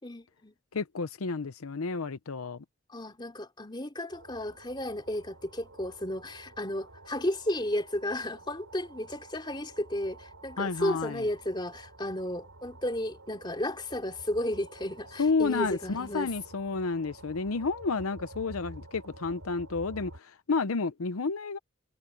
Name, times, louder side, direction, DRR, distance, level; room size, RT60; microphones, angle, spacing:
voice 1, 0.0-0.5 2.9-16.3, left 1 dB, 20° left, 3.1 m, -33 dB
voice 2, 0.7-2.6 10.6-11.3 15.2-21.6, left 4 dB, 85° left, 0.7 m, -31 dB
sound 1, 4.1-20.2, right 2 dB, 85° right, 6.3 m, -50 dB
head